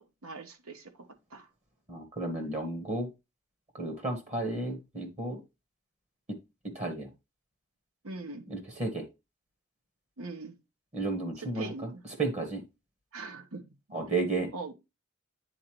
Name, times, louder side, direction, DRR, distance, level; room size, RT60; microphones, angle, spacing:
voice 1, 0.0-1.5 8.0-8.5 10.2-10.6 11.4-12.0 13.1-13.7 14.5-14.7, right 3 dB, 80° right, 1.0 m, -42 dB
voice 2, 1.9-3.1 3.7-5.4 6.3-6.4 6.7-7.1 8.5-9.1 10.9-11.7 12.2-12.6 13.9-14.5, right 2 dB, 30° right, 1.2 m, -32 dB
9.3 x 4.0 x 3.0 m
head